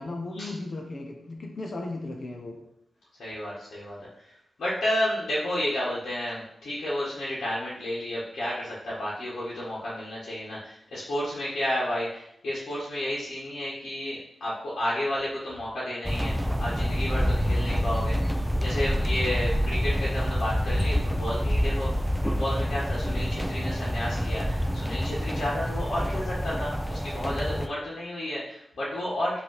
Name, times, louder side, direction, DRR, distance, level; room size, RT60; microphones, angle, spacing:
voice 1, 0.0-2.6, left 2 dB, 45° left, 2 dB, 0.8 m, -36 dB
voice 2, 3.2-4.0 4.2-4.3 4.6-21.9 22.2-29.4, left 1 dB, 90° left, -9 dB, 1.7 m, -31 dB
sound 1, 16.0-27.7, equal, ahead, 0.4 m, -27 dB
5.5 x 3.4 x 5.6 m, 0.77 s
wide cardioid pair, 135°, 0 cm